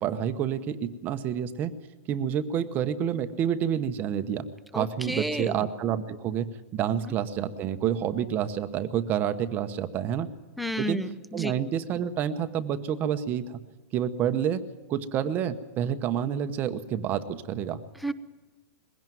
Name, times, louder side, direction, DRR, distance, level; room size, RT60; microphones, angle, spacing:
voice 1, 0.0-1.7 2.1-4.5 4.7-10.3 10.8-11.0 11.3-13.6 13.9-14.6 14.9-17.8, right 9 dB, 20° right, 10 dB, 0.9 m, -28 dB
voice 2, 4.7-5.6 6.9-7.1 10.6-11.5 18.0-18.1, equal, ahead, 11 dB, 0.7 m, -32 dB
21.5 x 17.0 x 9.2 m, 1.2 s
supercardioid pair, 170°, 8 cm